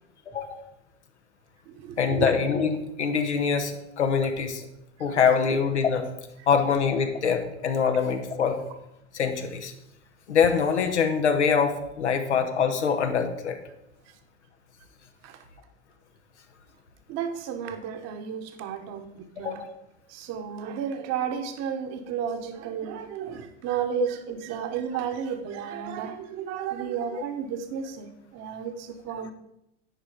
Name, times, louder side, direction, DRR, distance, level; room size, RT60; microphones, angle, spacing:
voice 1, 0.3-0.6 2.0-4.7 5.0-6.1 6.5-8.6 9.1-9.7 10.3-13.6 19.4-19.7, left 6 dB, 90° left, 6 dB, 1.1 m, -24 dB
voice 2, 1.7-2.3 5.1-5.2 14.1-14.2 15.2-15.4 17.1-19.6 20.1-29.3, right 8 dB, 50° right, 6 dB, 1.1 m, -33 dB
10.5 x 4.7 x 5.0 m, 0.84 s
hypercardioid pair, 85°, 34 cm